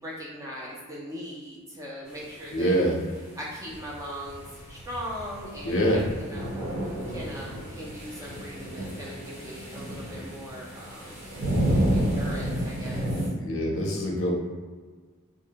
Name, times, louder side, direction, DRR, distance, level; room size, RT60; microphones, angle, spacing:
voice 1, 0.0-2.8 3.4-6.5 7.1-11.2 11.9-13.0, equal, 15° right, -5 dB, 0.3 m, -39 dB
voice 2, 2.5-3.0 5.6-6.1 13.3-14.3, equal, 65° left, -1 dB, 0.6 m, -25 dB
sound 1, 3.6-13.3, right 1 dB, 35° right, 0.8 m, -31 dB
2.5 x 2.0 x 2.8 m, 1.4 s
head